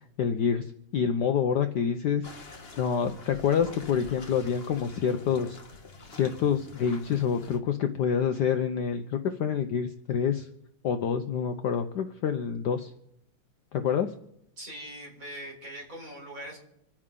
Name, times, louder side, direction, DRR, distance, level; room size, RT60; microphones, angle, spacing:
voice 1, 0.2-2.2 2.8-5.6 6.1-10.5 10.8-12.9 13.7-14.1, left 7 dB, 65° left, 8 dB, 1.1 m, -27 dB
sound 1, 2.2-7.6, left 3 dB, 30° left, 1.4 m, -47 dB
voice 2, 14.6-16.6, right 1 dB, 40° right, -2 dB, 4.4 m, -41 dB
26.5 x 9.6 x 3.8 m, 0.78 s
omnidirectional pair, 2.3 m